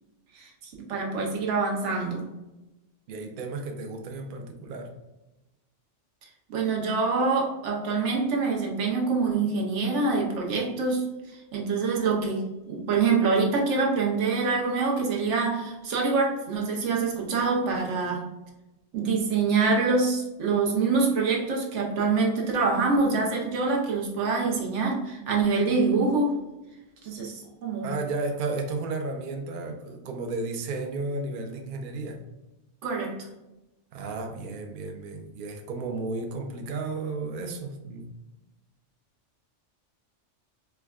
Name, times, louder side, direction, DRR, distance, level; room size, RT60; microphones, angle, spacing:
voice 1, 0.3-2.3 6.5-18.3 18.9-26.4 27.0-27.9 32.8-33.2, right 4 dB, 85° right, -1 dB, 1.0 m, -25 dB
voice 2, 3.1-4.9 27.8-32.2 33.9-38.1, right 3 dB, 60° right, 4 dB, 0.6 m, -33 dB
4.5 x 2.1 x 2.3 m, 1.0 s
omnidirectional pair, 1.2 m